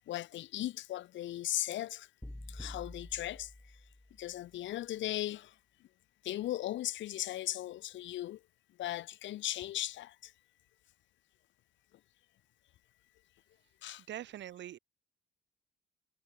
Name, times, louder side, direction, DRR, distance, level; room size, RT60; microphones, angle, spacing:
voice 1, 0.1-2.1 2.5-3.5 4.2-5.5 6.2-8.4 8.8-10.3 13.8-14.0, left 14 dB, 70° left, 0.6 m, -37 dB
sound 1, 2.2-4.4, left 1 dB, 5° left, 3.4 m, -48 dB
voice 2, 14.1-14.8, right 12 dB, 65° right, 0.9 m, -43 dB
cardioid pair, 90°, 20 cm